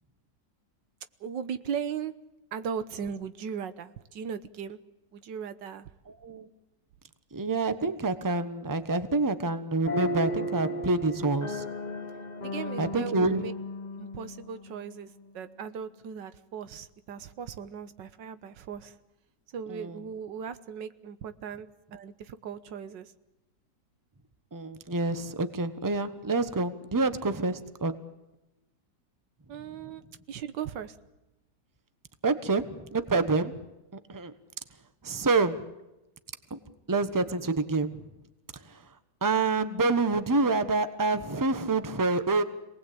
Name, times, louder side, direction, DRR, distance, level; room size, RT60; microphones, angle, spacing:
voice 1, 1.2-2.1 2.5-4.8 5.1-5.9 12.4-13.5 14.0-19.0 19.5-23.1 29.5-30.0 30.3-31.0, right 7 dB, 85° right, 12 dB, 1.7 m, -38 dB
voice 2, 7.3-11.6 12.8-13.4 19.7-20.0 24.5-27.9 32.2-33.6 34.1-34.3 35.0-35.6 36.5-36.6 36.9-38.0 38.6-38.8 39.2-42.4, right 3 dB, 15° right, 11 dB, 1.0 m, -27 dB
sound 1, 9.8-15.3, left 1 dB, 25° left, 1.3 m, -35 dB
27.0 x 19.0 x 8.6 m, 0.98 s
omnidirectional pair, 1.9 m